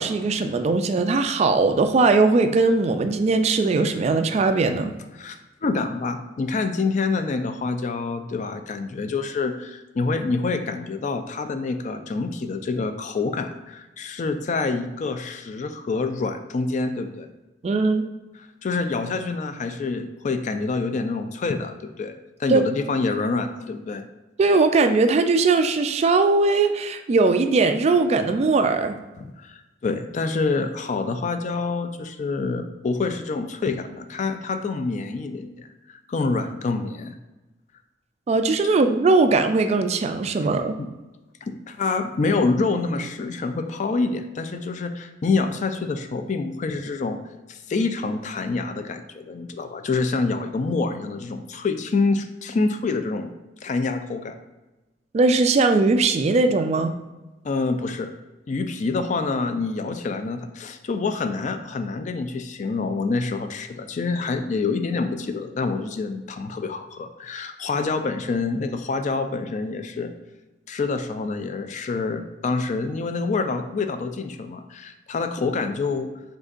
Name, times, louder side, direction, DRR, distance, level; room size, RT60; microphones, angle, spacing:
voice 1, 0.0-4.9 17.6-18.0 22.5-22.6 24.4-29.0 38.3-40.7 55.1-56.9, right 3 dB, 35° right, 8 dB, 0.3 m, -20 dB
voice 2, 5.1-17.3 18.6-22.1 22.4-24.0 29.4-35.7 36.1-37.2 40.8-40.9 41.4-47.2 47.5-53.3 53.6-54.4 57.4-58.1 58.5-70.1 70.7-76.1, left 3 dB, 40° left, 8 dB, 0.3 m, -27 dB
5.2 x 3.6 x 2.5 m, 1.1 s
head